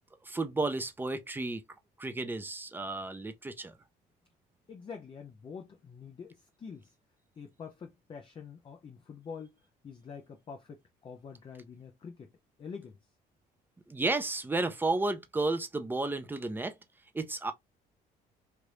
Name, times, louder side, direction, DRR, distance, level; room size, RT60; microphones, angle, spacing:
voice 1, 0.2-1.6 2.0-3.7 13.9-16.7 17.1-17.5, right 2 dB, 10° right, 0.6 m, -32 dB
voice 2, 4.7-6.9 7.4-9.5 9.8-12.3 12.6-13.0, left 6 dB, 30° left, 0.5 m, -46 dB
3.3 x 2.5 x 2.9 m
cardioid pair, 110°, 17 cm